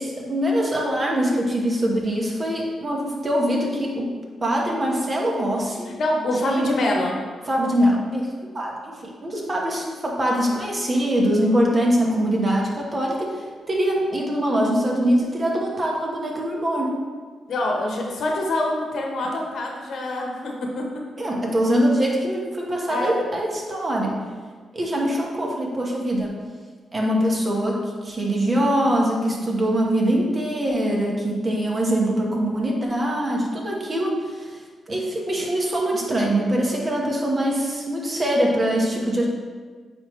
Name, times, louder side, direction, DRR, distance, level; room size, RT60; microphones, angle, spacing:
voice 1, 0.0-4.1 4.4-5.9 6.4-6.7 7.5-8.3 8.5-17.0 21.2-24.2 24.7-26.4 26.9-39.3, equal, 35° right, -1 dB, 1.3 m, -23 dB
voice 2, 5.8-7.2 17.5-20.8 22.9-23.1, left 1 dB, 70° left, 0 dB, 1.1 m, -25 dB
8.5 x 3.6 x 3.2 m, 1.5 s
cardioid pair, 75°, 0 cm